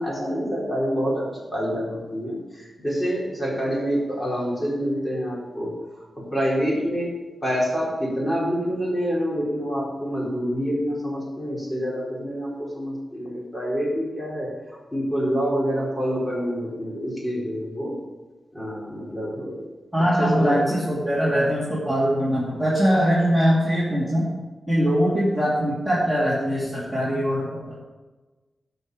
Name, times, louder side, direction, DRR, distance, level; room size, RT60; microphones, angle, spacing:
voice 1, 0.0-14.5 14.9-17.9 18.5-19.6 20.2-20.6, equal, 15° left, -5 dB, 4.3 m, -27 dB
voice 2, 19.9-24.3 24.7-27.7, equal, ahead, -9 dB, 2.8 m, -22 dB
12.5 x 5.7 x 6.8 m, 1.2 s
wide cardioid pair, 115°, 0 cm